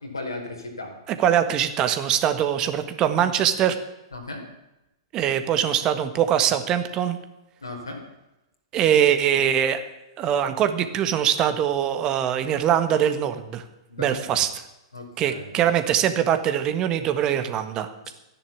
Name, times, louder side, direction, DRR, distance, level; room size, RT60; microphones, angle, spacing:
voice 1, 0.0-1.0 4.1-4.4 7.6-8.0 13.9-14.4 14.9-15.6 18.0-18.1, left 2 dB, 85° left, 1 dB, 4.6 m, -36 dB
voice 2, 1.1-3.7 5.1-7.2 8.7-9.8 10.2-13.6 14.0-14.5 15.2-18.1, right 9 dB, 30° right, 9 dB, 1.5 m, -22 dB
14.0 x 10.5 x 8.7 m, 0.94 s
figure-of-eight pair, 110°, 2 cm